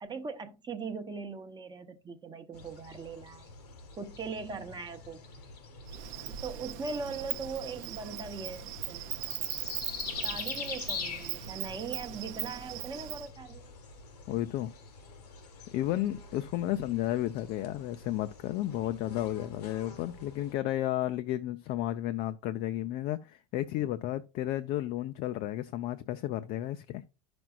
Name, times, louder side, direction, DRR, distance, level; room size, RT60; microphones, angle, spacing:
voice 1, 0.0-3.5 4.0-5.2 6.3-9.4 10.2-13.7, right 4 dB, 20° right, 0.9 m, -40 dB
sound 1, 2.5-20.5, left 5 dB, 85° left, 1.7 m, -45 dB
Insect, 5.9-13.3, right 14 dB, 60° right, 0.7 m, -39 dB
voice 2, 14.3-14.7 15.7-27.0, left 13 dB, 50° left, 0.6 m, -32 dB
10.5 x 6.1 x 2.4 m
hypercardioid pair, 95°, 20 cm